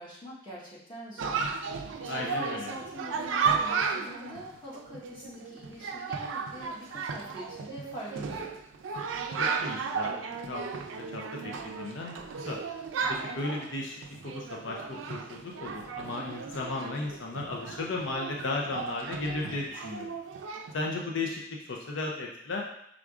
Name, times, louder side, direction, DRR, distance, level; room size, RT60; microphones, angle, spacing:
voice 1, 0.0-1.7 2.0-8.6, equal, 25° left, -6 dB, 1.1 m, -44 dB
Chatter, 1.2-20.8, right 5 dB, 85° right, 0.4 m, -34 dB
voice 2, 2.1-2.7 9.4-10.1 10.5-10.6 11.1-11.2 11.6-12.2 12.5-12.6 13.1-20.1 20.7-21.4 21.7-22.6, left 2 dB, 75° left, -1 dB, 0.5 m, -35 dB
4.7 x 3.6 x 2.4 m, 0.74 s
head